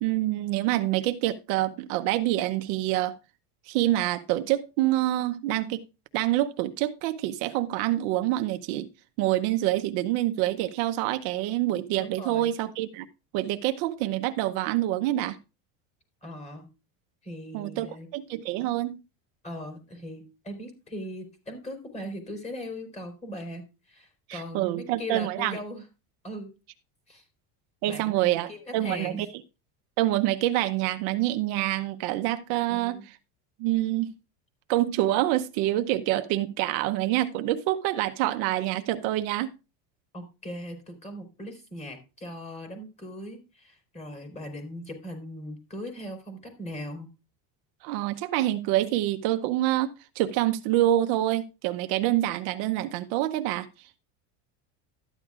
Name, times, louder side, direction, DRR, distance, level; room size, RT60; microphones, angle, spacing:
voice 1, 0.0-3.2 3.7-5.8 6.1-8.9 9.2-13.1 13.3-15.4 17.5-19.0 24.3-25.6 27.8-29.3 30.0-33.0 33.6-34.1 34.7-39.5 47.8-53.7, right 15 dB, 65° right, 0.9 m, -26 dB
voice 2, 12.0-12.5 16.2-16.7 17.2-18.1 19.4-25.9 26.2-26.5 27.1-27.2 27.8-29.3 32.6-33.1 40.1-47.1, equal, 15° left, 3.9 m, -39 dB
13.0 x 10.5 x 2.4 m
cardioid pair, 150°, 40 cm